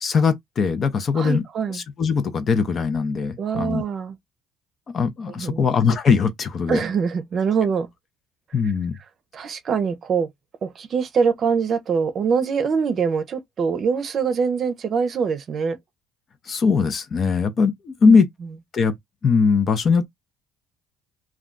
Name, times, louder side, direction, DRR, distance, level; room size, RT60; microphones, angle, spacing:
voice 1, 0.0-1.4 1.7-3.8 4.9-6.8 8.5-8.9 16.5-18.3 18.7-19.0 19.2-20.1, left 5 dB, 40° left, 0.6 m, -20 dB
voice 2, 1.1-1.8 3.4-4.2 5.3-5.7 6.7-7.9 9.3-10.3 10.6-15.8 18.0-18.2, right 6 dB, 45° right, 0.6 m, -23 dB
2.3 x 2.2 x 3.7 m
cardioid pair, 105°, 0 cm